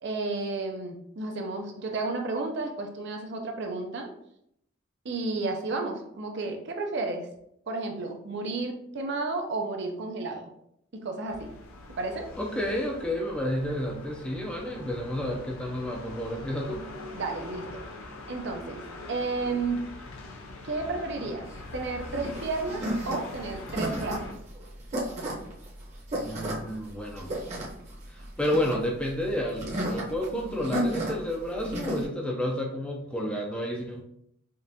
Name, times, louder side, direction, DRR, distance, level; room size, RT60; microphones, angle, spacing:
voice 1, 0.0-4.1 5.0-7.3 7.7-10.5 10.9-11.5 12.0-12.3 17.1-17.8 18.3-18.8 19.1-19.8 20.6-21.5 21.7-24.4 30.3-30.8, right 3 dB, 55° right, 3 dB, 0.6 m, -32 dB
sound 1, 11.3-24.3, left 2 dB, 85° left, 0.5 m, -43 dB
voice 2, 12.4-16.8 26.2-27.4 28.1-34.0, equal, 5° left, -1 dB, 0.5 m, -31 dB
sound 2, 21.5-32.1, equal, 35° right, 0.9 m, -33 dB
5.2 x 2.5 x 2.7 m, 0.73 s
head